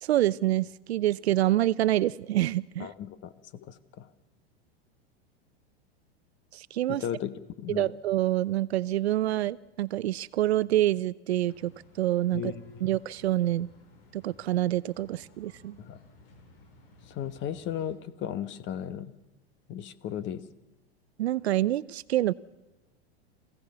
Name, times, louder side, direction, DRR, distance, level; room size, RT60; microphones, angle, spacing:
voice 1, 0.0-2.9 6.5-7.0 7.7-11.7 12.0-12.5 12.8-13.7 14.1-15.8 21.2-22.3, right 14 dB, 85° right, 19 dB, 0.7 m, -26 dB
voice 2, 2.8-4.1 6.9-7.3 7.6-7.9 12.3-12.5 15.8-16.0 17.1-19.1 19.7-20.4, left 10 dB, 35° left, 13 dB, 1.3 m, -35 dB
sound 1, 11.5-18.0, left 2 dB, 65° left, 5.9 m, -57 dB
27.5 x 16.0 x 6.9 m, 1.1 s
hypercardioid pair, 115°, 31 cm